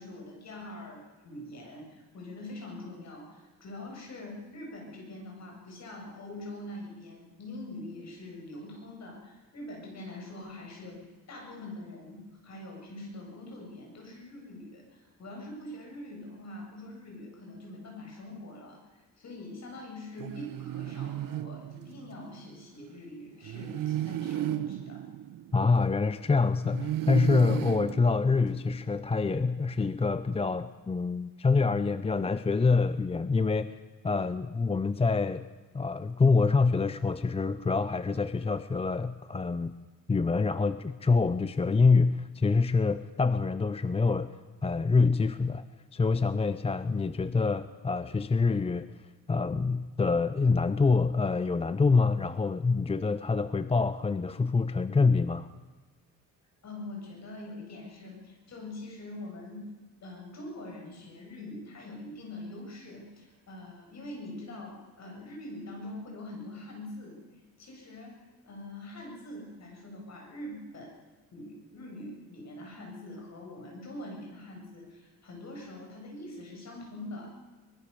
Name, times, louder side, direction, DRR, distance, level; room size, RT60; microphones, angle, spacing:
voice 1, 0.0-25.0 56.6-59.7 60.0-67.2 67.6-71.0 71.3-77.3, left 1 dB, 50° left, 1 dB, 8.0 m, -44 dB
sound 1, 20.2-22.3 23.4-26.1 26.7-28.9, right 13 dB, 70° right, 0.9 m, -35 dB
voice 2, 25.5-33.7 34.0-35.5 35.7-39.7 40.1-44.3 44.6-45.6 45.9-48.9 49.3-55.5, left 4 dB, 15° left, 13 dB, 0.6 m, -26 dB
24.0 x 21.0 x 6.9 m, 1.3 s
cardioid pair, 135°, 35 cm